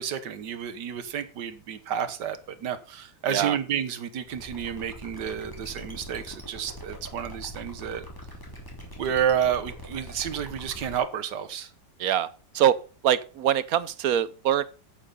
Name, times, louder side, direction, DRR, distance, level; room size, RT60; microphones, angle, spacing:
voice 1, 0.0-8.0 9.0-11.7, right 8 dB, 85° right, 1.7 m, -30 dB
sound 1, 4.3-11.0, equal, 10° left, 2.9 m, -42 dB
voice 2, 12.0-12.8 13.0-14.6, right 10 dB, 65° right, 1.0 m, -24 dB
9.0 x 8.7 x 5.5 m
omnidirectional pair, 1.8 m